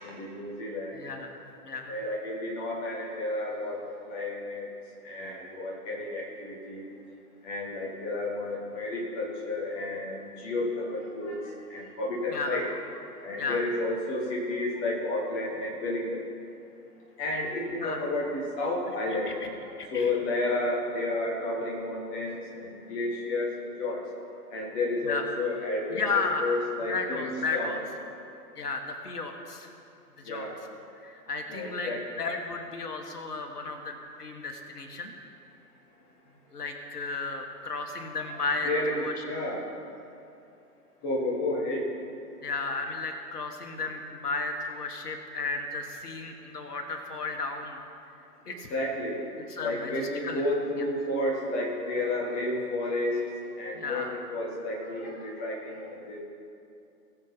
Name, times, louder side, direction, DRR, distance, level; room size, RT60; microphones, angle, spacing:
voice 1, 0.0-1.0 1.9-4.7 5.0-6.8 7.4-12.7 13.2-16.2 17.2-19.5 19.9-24.1 24.5-27.8 30.2-30.5 31.5-32.0 38.6-39.7 41.0-41.9 48.5-49.2 49.6-53.2 53.6-56.2, left 2 dB, 10° left, -3 dB, 0.5 m, -31 dB
voice 2, 0.9-1.4 1.6-2.0 12.3-12.6 13.4-13.6 17.8-18.1 19.3-19.5 19.8-20.1 25.0-25.2 25.9-26.6 26.9-27.8 28.6-29.7 30.2-30.5 31.0-35.2 36.5-39.2 42.4-47.8 48.5-48.7 49.5-50.4 53.7-54.1, left 3 dB, 70° left, 4 dB, 1.7 m, -34 dB
18.5 x 7.2 x 4.1 m, 2.7 s
figure-of-eight pair, 120°, 48 cm